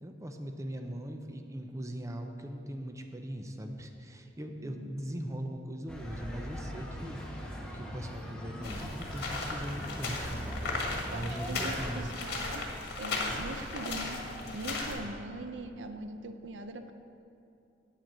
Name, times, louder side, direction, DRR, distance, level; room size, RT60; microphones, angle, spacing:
voice 1, 0.0-10.6 11.1-12.1 13.3-13.5, right 1 dB, 15° right, 4 dB, 0.6 m, -40 dB
voice 2, 4.6-5.0 10.9-12.6 13.0-14.2 14.5-16.9, right 2 dB, 75° right, 8 dB, 0.6 m, -41 dB
sound 1, 5.9-12.0, equal, 5° left, 1.1 m, -41 dB
sound 2, 8.6-15.0, left 3 dB, 60° left, 1.6 m, -36 dB
8.8 x 7.8 x 6.1 m, 2.7 s
head